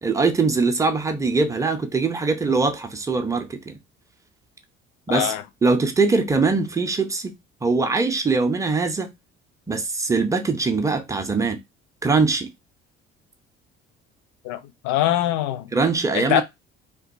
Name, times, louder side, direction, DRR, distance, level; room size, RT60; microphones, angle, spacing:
voice 1, 0.0-3.8 5.1-5.3 5.6-7.3 7.6-9.1 9.7-11.6 12.0-12.5 15.7-16.4, right 4 dB, 10° right, 0.5 m, -22 dB
voice 2, 5.1-5.4 14.4-15.7 16.1-16.4, left 13 dB, 65° left, 0.4 m, -23 dB
2.6 x 2.2 x 2.5 m
hypercardioid pair, 55°, 32 cm